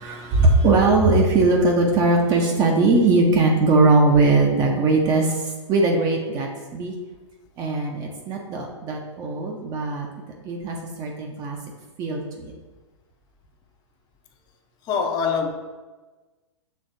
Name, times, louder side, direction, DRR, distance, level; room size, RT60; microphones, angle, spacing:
voice 1, 0.0-6.9 7.6-10.1 10.4-11.6 12.0-12.5, right 3 dB, 25° right, 0 dB, 0.5 m, -20 dB
voice 2, 14.8-15.5, left 5 dB, 25° left, 4 dB, 0.6 m, -23 dB
6.3 x 3.2 x 2.6 m, 1.3 s
figure-of-eight pair, 110°, 16 cm